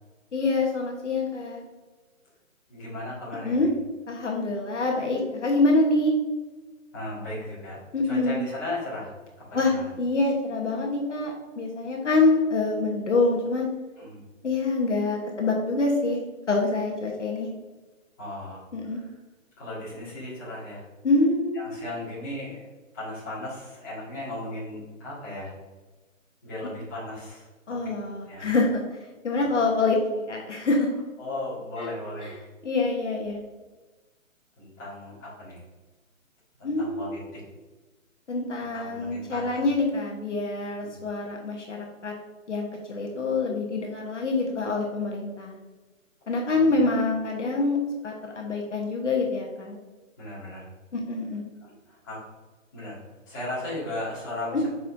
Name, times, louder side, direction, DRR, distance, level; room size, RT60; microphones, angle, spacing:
voice 1, 0.3-1.6 3.4-3.7 4.1-6.1 7.9-8.4 9.5-13.7 14.4-16.2 16.5-17.5 18.7-19.0 21.0-21.8 27.7-28.8 29.2-30.0 30.3-30.9 31.8-31.9 32.6-33.4 36.6-37.2 38.3-42.1 42.5-45.6 46.3-47.8 48.0-49.8 50.9-51.4 54.5-54.6, left 3 dB, 60° left, 0 dB, 1.2 m, -25 dB
voice 2, 2.7-3.7 6.9-9.9 14.0-14.2 18.2-19.1 19.6-20.9 21.5-22.7 22.9-25.5 26.4-27.8 28.3-28.5 29.3-29.5 31.2-32.3 34.6-35.6 36.6-37.4 38.7-39.6 40.8-41.0 46.5-46.8 50.2-50.7 51.6-52.2 52.7-54.7, left 1 dB, 15° left, -11 dB, 1.8 m, -36 dB
7.7 x 5.1 x 2.6 m, 1.2 s
hypercardioid pair, 180°, 41 cm